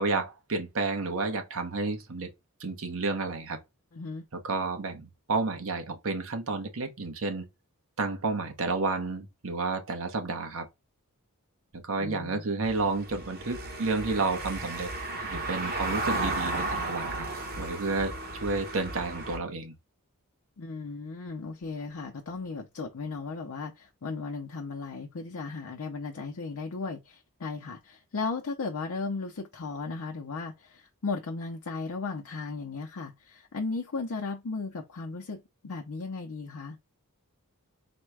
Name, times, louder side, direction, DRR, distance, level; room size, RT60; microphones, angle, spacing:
voice 1, 0.0-2.3 2.6-3.6 4.4-7.5 8.0-10.7 11.7-14.9 15.2-17.3 17.6-19.7, right 3 dB, 65° right, 1.0 m, -31 dB
voice 2, 3.9-4.2 12.0-12.4 20.6-36.8, left 4 dB, 65° left, 0.6 m, -36 dB
Car passing by / Engine, 12.6-19.4, right 2 dB, 45° right, 1.2 m, -34 dB
4.3 x 2.2 x 4.6 m
head